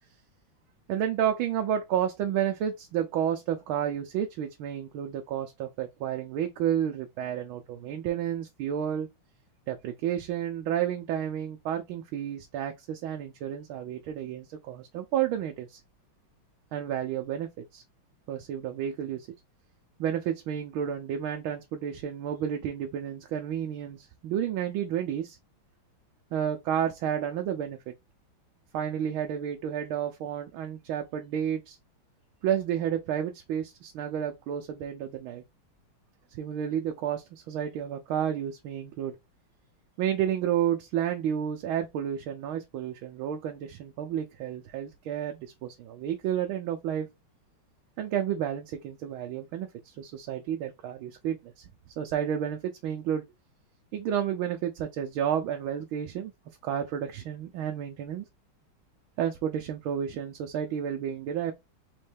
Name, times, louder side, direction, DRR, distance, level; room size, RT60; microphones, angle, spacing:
voice 1, 0.9-9.1 9.7-15.8 16.7-17.8 18.3-19.3 20.0-25.4 26.3-27.9 28.7-31.8 32.4-35.4 36.3-39.1 40.0-47.1 48.0-51.7 52.0-53.2 53.9-56.3 56.6-58.2 59.2-61.5, right 9 dB, 80° right, 1.5 m, -31 dB
4.3 x 3.2 x 3.3 m
omnidirectional pair, 2.3 m